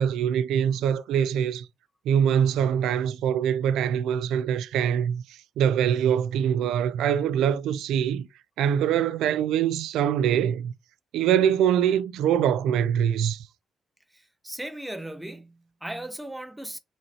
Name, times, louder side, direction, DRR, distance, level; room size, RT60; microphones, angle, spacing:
voice 1, 0.0-1.7 2.1-8.3 8.6-10.7 11.1-13.5, right 9 dB, 85° right, 0.3 m, -24 dB
voice 2, 14.1-16.8, right 1 dB, 5° right, 0.6 m, -37 dB
4.1 x 3.1 x 2.7 m
cardioid pair, 90°, 0 cm